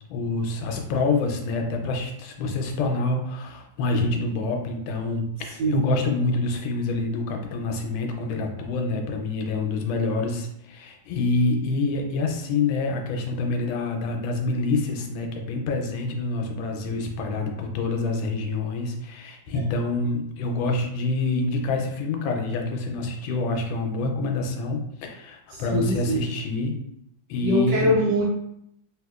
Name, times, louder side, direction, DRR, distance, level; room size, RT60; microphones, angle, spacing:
voice 1, 0.1-26.7 27.3-27.9, left 3 dB, 85° left, 3 dB, 1.3 m, -27 dB
voice 2, 5.6-5.9 19.5-19.6 25.5-26.3 27.4-28.2, equal, 70° right, -3 dB, 1.5 m, -23 dB
3.2 x 2.7 x 2.3 m, 0.76 s
omnidirectional pair, 2.1 m